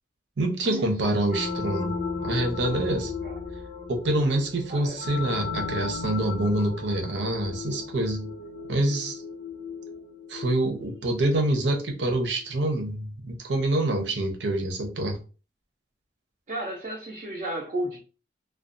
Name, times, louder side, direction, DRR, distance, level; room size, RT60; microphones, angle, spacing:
voice 1, 0.4-1.9 2.2-3.1 3.9-8.3 8.7-9.2 10.3-15.2, right 1 dB, 85° right, 0.7 m, -26 dB
sound 1, 1.3-11.7, left 5 dB, 60° left, 0.6 m, -35 dB
voice 2, 16.5-18.0, right 1 dB, 40° right, 0.5 m, -33 dB
2.4 x 2.3 x 2.5 m
head